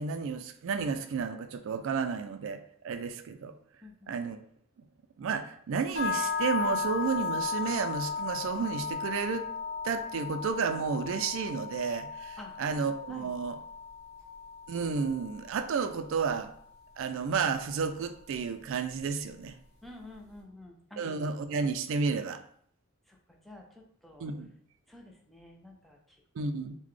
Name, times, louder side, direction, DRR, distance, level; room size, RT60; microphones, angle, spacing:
voice 1, 0.0-3.5 4.1-4.4 5.2-9.5 9.8-13.6 14.7-16.5 17.0-19.6 21.0-22.4 24.2-24.5 26.4-26.8, right 5 dB, 65° right, 9 dB, 0.3 m, -32 dB
voice 2, 3.8-4.1 12.4-12.6 13.1-13.3 19.8-21.0 23.1-23.2 23.4-24.3 24.9-26.2, left 1 dB, ahead, 0 dB, 0.5 m, -49 dB
sound 1, 5.9-16.0, left 5 dB, 45° left, 1.2 m, -36 dB
3.9 x 2.2 x 3.1 m, 0.63 s
head